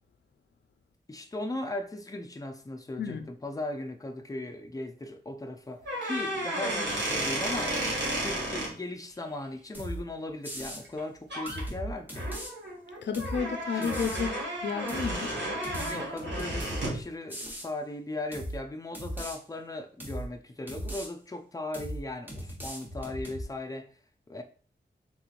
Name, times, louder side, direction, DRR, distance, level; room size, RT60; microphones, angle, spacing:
voice 1, 1.1-12.3 13.7-14.0 15.9-23.9 24.3-24.4, left 2 dB, 20° left, 0.5 m, -38 dB
sound 1, 5.8-8.7 10.8-11.0 11.3-11.6 12.1-17.0, right 1 dB, 75° right, 1.4 m, -33 dB
sound 2, 9.7-10.0 10.4-10.8 11.5-12.5 13.1-13.4 13.8-14.3 14.9-15.2 15.6-16.9 17.3-17.7 18.3-18.6 18.9-19.4 20.0-20.3 20.7-21.1 21.7-22.0 22.3-23.4, equal, 10° right, 1.1 m, -38 dB
voice 2, 13.0-14.3 14.6-15.3 15.7-16.0, left 6 dB, 80° left, 0.4 m, -32 dB
3.8 x 3.0 x 2.5 m
wide cardioid pair, 65°, 18 cm